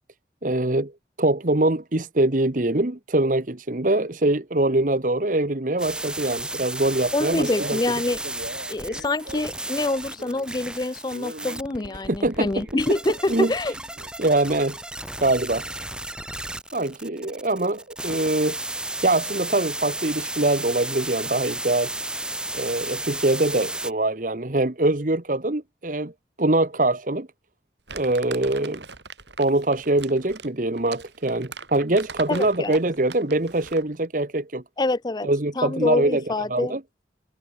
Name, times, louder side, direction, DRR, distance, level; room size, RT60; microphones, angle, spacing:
voice 1, 0.4-0.9 1.2-7.8 12.2-12.6 13.3-13.5 14.2-14.8 15.2-15.6 16.7-18.6 19.0-21.9 22.5-26.1 26.4-27.3 27.9-28.8 29.4-34.6 35.2-36.2 36.5-36.8, right 2 dB, 45° right, 1.3 m, -23 dB
sound 1, 5.8-23.9, right 2 dB, 5° right, 2.8 m, -33 dB
voice 2, 7.1-8.2 8.7-13.7 32.3-32.8 34.8-35.3 35.6-36.7, left 2 dB, 25° left, 0.5 m, -26 dB
Male speech man speaking, 7.2-10.5 10.7-14.1, right 2 dB, 65° right, 4.9 m, -40 dB
Crumpling crinkling, 27.9-33.9, right 5 dB, 85° right, 7.6 m, -41 dB
head